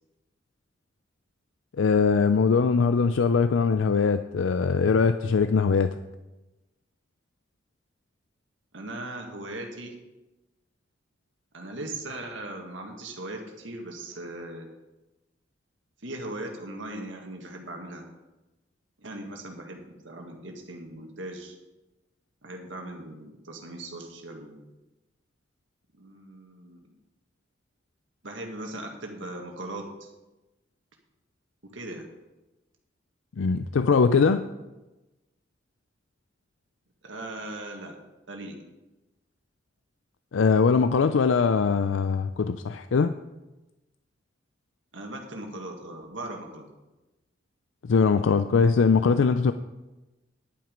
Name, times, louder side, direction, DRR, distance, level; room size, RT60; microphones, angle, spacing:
voice 1, 1.8-6.0 33.4-34.4 40.3-43.1 47.8-49.5, left 5 dB, 85° left, 11 dB, 0.4 m, -21 dB
voice 2, 8.7-9.9 11.5-14.7 16.0-18.1 19.0-21.6 22.4-24.6 26.0-26.9 28.2-30.1 31.6-32.1 37.0-38.0 38.3-38.6 44.9-46.7, right 1 dB, 85° right, 2 dB, 1.7 m, -39 dB
10.5 x 9.2 x 5.1 m, 1.0 s
head